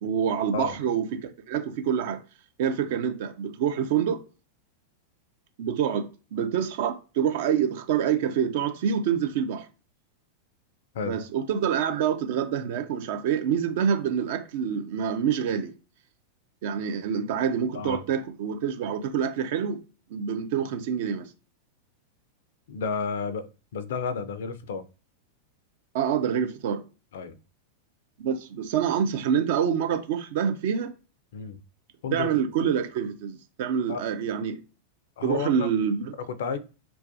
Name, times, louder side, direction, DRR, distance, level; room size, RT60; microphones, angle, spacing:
voice 1, 0.0-2.2 2.6-4.2 5.6-9.7 11.0-15.7 16.6-19.8 20.1-21.3 25.9-26.8 28.2-30.9 32.1-34.6 35.2-36.1, right 8 dB, 50° right, 0.4 m, -26 dB
voice 2, 22.7-24.8 27.1-27.4 31.3-31.6 32.0-32.3 33.9-34.0 35.2-35.7 36.2-36.6, left 5 dB, 60° left, 0.3 m, -31 dB
2.3 x 2.1 x 2.6 m
figure-of-eight pair, 90°, 0 cm